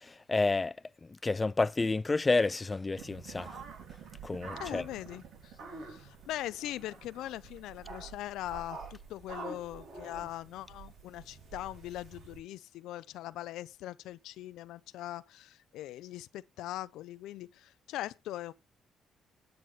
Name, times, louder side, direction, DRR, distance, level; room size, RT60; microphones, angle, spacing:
voice 1, 0.3-0.7 1.2-3.5 4.2-4.8, left 3 dB, 25° left, 0.4 m, -29 dB
sound 1, 3.0-12.4, right 4 dB, 80° right, 4.5 m, -47 dB
voice 2, 4.6-5.5 5.8-18.5, left 14 dB, 90° left, 0.5 m, -41 dB
9.4 x 6.4 x 4.0 m
cardioid pair, 90°, 0 cm